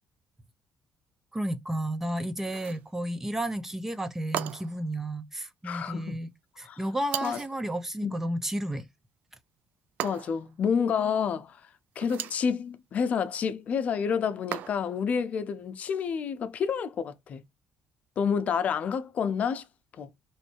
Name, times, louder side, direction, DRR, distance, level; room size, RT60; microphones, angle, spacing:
voice 1, 1.3-6.3 6.6-8.9, right 1 dB, 10° right, 0.7 m, -32 dB
sound 1, 2.4-2.9 4.3-4.9 7.1-7.6 10.0-10.5 12.0-12.5 14.5-15.0, right 11 dB, 75° right, 0.4 m, -36 dB
voice 2, 5.6-6.2 6.6-6.8 7.2-7.4 8.0-8.1 10.0-11.6 12.0-17.4 18.2-19.7 20.0-20.1, left 6 dB, 55° left, 0.6 m, -29 dB
3.2 x 2.6 x 4.5 m
cardioid pair, 85°, 3 cm